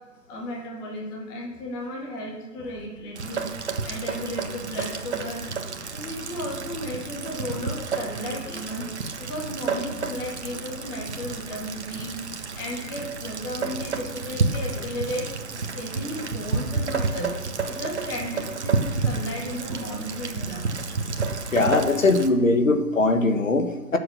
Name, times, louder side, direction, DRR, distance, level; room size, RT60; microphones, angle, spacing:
voice 1, 0.3-3.4 3.8-5.4 5.9-8.8 9.2-15.3 15.7-20.7, equal, 10° left, -2 dB, 1.6 m, -34 dB
Rain, 3.1-22.3, right 4 dB, 45° right, 1.6 m, -30 dB
voice 2, 21.5-24.0, left 2 dB, 55° left, 7 dB, 1.8 m, -21 dB
21.0 x 7.9 x 6.1 m, 1.2 s
figure-of-eight pair, 150°, 47 cm